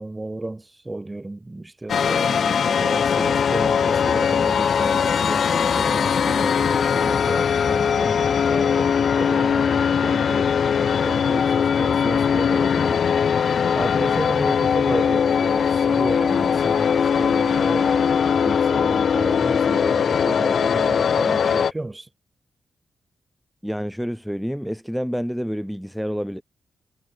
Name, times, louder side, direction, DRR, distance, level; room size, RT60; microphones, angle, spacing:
voice 1, 0.0-13.0 13.7-22.1, right 2 dB, 15° right, 5.3 m, -32 dB
sound 1, 1.9-21.7, left 7 dB, 60° left, 2.8 m, -20 dB
voice 2, 23.6-26.4, equal, ahead, 4.1 m, -28 dB
wide cardioid pair, 120°, 0 cm